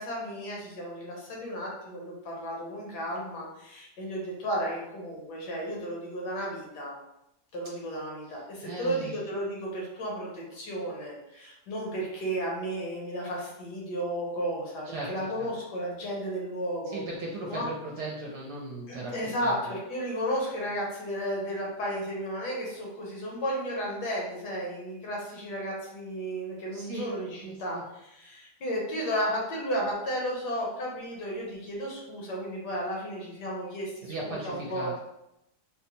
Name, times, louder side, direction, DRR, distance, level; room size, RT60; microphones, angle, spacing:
voice 1, 0.0-6.9 7.5-17.0 17.5-17.7 18.9-34.9, equal, 70° left, -2 dB, 1.5 m, -33 dB
voice 2, 8.6-9.2 14.8-15.5 16.9-19.1 19.4-19.7 26.7-27.0 27.4-27.8 34.0-35.0, right 2 dB, 75° right, -4 dB, 1.2 m, -37 dB
3.9 x 2.2 x 2.9 m, 0.86 s
omnidirectional pair, 1.8 m